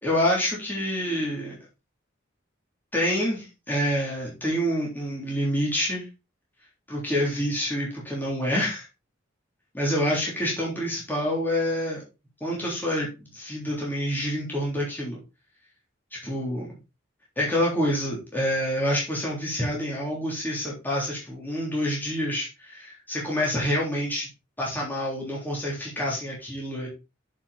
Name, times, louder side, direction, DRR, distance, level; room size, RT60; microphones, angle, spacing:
voice 1, 0.0-1.6 2.9-6.1 6.9-8.9 9.7-12.0 12.4-15.2 16.2-16.7 17.4-24.3 24.6-26.9, equal, 10° left, -4 dB, 3.5 m, -27 dB
7.4 x 7.3 x 4.1 m, 0.27 s
head